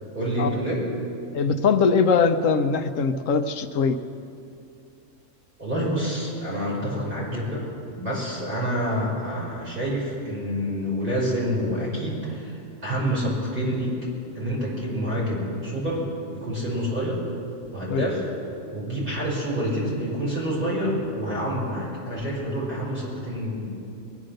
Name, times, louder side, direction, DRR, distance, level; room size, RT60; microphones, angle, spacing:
voice 1, 0.1-0.8 5.6-7.6 7.9-13.9 14.3-16.0 16.3-17.2 17.7-18.3 18.7-23.7, equal, 40° right, -6 dB, 5.4 m, -27 dB
voice 2, 1.3-4.0 17.9-18.0, left 5 dB, 75° left, 9 dB, 1.1 m, -21 dB
22.5 x 9.6 x 6.5 m, 2.6 s
omnidirectional pair, 1.4 m